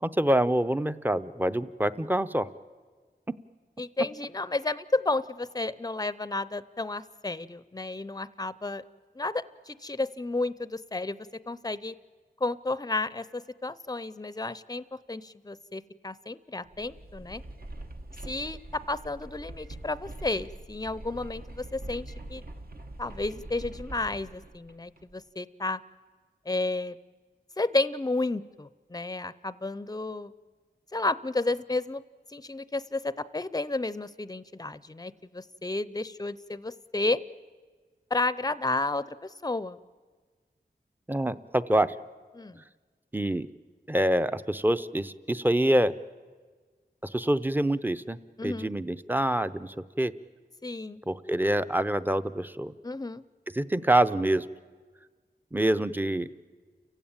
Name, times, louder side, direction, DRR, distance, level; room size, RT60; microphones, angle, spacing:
voice 1, 0.0-2.5 41.1-41.9 43.1-43.5 43.9-45.9 47.0-50.1 51.1-52.7 53.5-54.5 55.5-56.3, right 1 dB, 10° right, 12 dB, 0.7 m, -26 dB
voice 2, 3.8-8.8 9.2-11.9 12.4-17.4 18.2-22.4 23.0-25.8 26.5-27.0 27.6-30.3 30.9-32.0 32.3-37.2 38.1-39.8 42.3-42.6 48.4-48.7 50.6-51.0 52.8-53.2, left 2 dB, 20° left, 17 dB, 0.6 m, -32 dB
sound 1, 16.7-25.2, right 1 dB, 60° right, 1.4 m, -43 dB
29.5 x 16.0 x 9.0 m, 1.5 s
wide cardioid pair, 70°, 18 cm